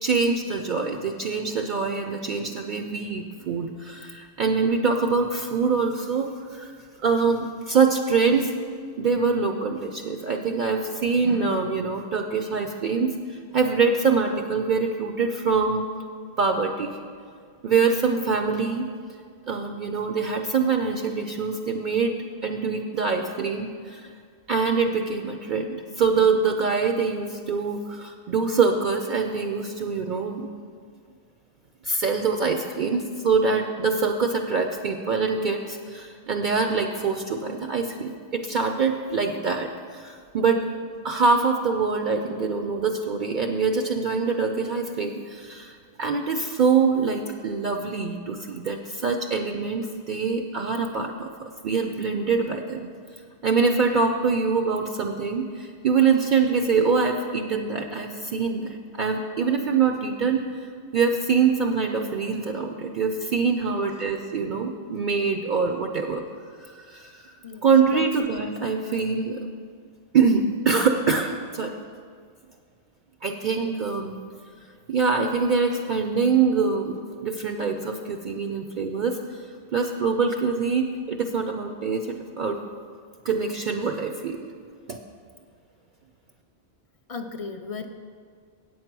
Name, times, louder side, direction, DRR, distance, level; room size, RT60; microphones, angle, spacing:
voice 1, 0.0-6.7 7.0-8.5 9.0-15.9 16.4-17.0 17.6-18.9 19.5-24.1 24.5-30.5 31.8-40.7 41.0-52.8 53.4-66.2 66.6-67.3 67.6-69.4 70.1-71.7 73.2-74.2 74.9-76.9 77.2-79.4 79.7-82.6 83.2-84.4 84.9-85.0, right 5 dB, 55° right, 4 dB, 0.6 m, -24 dB
voice 2, 87.1-87.9, left 4 dB, 50° left, 6 dB, 0.4 m, -36 dB
8.5 x 7.9 x 5.9 m, 2.1 s
omnidirectional pair, 1.1 m